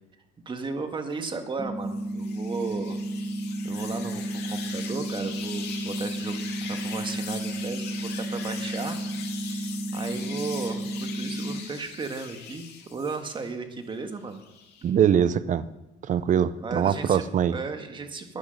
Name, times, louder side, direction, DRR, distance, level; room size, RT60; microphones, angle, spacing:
voice 1, 0.5-3.0 3.6-9.0 9.4-14.4 16.6-17.2 17.5-18.4, right 4 dB, 30° right, 6 dB, 1.7 m, -35 dB
sound 1, 1.6-11.6, right 1 dB, 15° left, 1.2 m, -32 dB
sound 2, 1.9-13.5 13.9-14.9, left 7 dB, 75° left, 2.2 m, -41 dB
voice 2, 14.8-15.7 16.1-17.6, right 9 dB, 50° right, 16 dB, 0.7 m, -22 dB
11.0 x 10.0 x 6.6 m, 0.94 s
cardioid pair, 110°, 17 cm